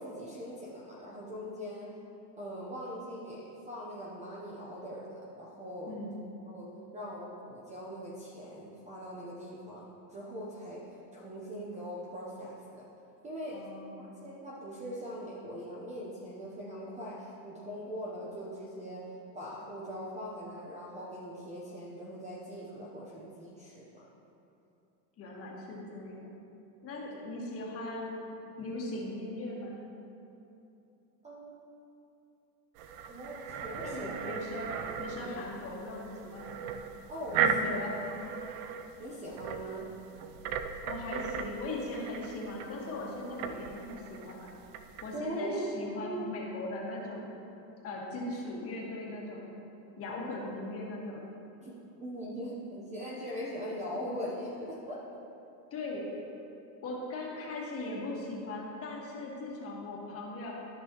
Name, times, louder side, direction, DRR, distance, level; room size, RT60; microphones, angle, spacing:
voice 1, 0.0-2.0 2.4-6.0 6.5-12.9 13.2-24.1 27.1-27.2 31.2-31.6 33.1-34.2 35.1-35.3 37.1-37.7 39.0-39.9 45.1-45.7 46.0-46.3 50.1-50.3 51.6-55.1, equal, 15° right, -5 dB, 0.8 m, -41 dB
voice 2, 5.9-6.2 13.5-14.2 25.2-26.4 26.8-28.1 28.6-29.8 33.8-34.7 35.0-36.5 37.4-38.3 40.9-44.5 45.0-47.3 47.8-49.5 50.0-51.3 55.7-56.0 56.8-60.5, left 2 dB, 30° left, -3 dB, 1.5 m, -39 dB
sound 1, 32.7-45.2, right 6 dB, 45° right, 0.5 m, -37 dB
13.5 x 5.4 x 3.0 m, 2.8 s
supercardioid pair, 135°, 49 cm